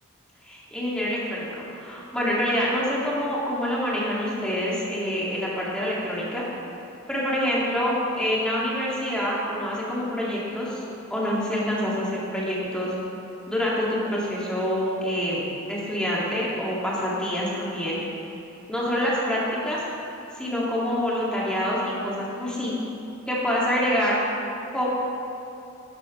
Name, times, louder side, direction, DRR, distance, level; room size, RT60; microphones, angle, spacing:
voice 1, 0.4-6.4 7.1-10.8 11.1-12.9 13.5-18.0 18.7-19.8 20.4-22.8 23.3-24.2 24.7-24.9, equal, 5° left, -7 dB, 2.2 m, -26 dB
12.5 x 10.0 x 3.2 m, 2.9 s
head